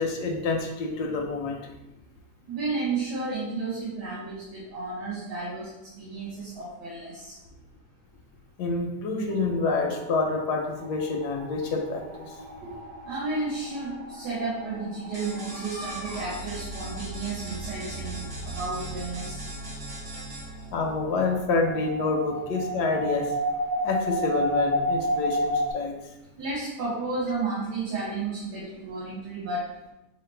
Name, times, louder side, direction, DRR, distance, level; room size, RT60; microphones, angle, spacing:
voice 1, 0.0-1.7 8.6-12.0 20.7-23.3 23.8-25.9, left 3 dB, 75° left, 2 dB, 1.2 m, -27 dB
voice 2, 2.5-7.3 12.6-12.7 13.0-19.4 26.4-29.7, right 3 dB, 75° right, -7 dB, 1.6 m, -32 dB
sound 1, 9.3-25.7, equal, 60° right, 1.0 m, -33 dB
sound 2, 15.1-20.7, right 1 dB, 45° right, 0.7 m, -42 dB
5.4 x 2.1 x 3.2 m, 0.95 s
omnidirectional pair, 1.8 m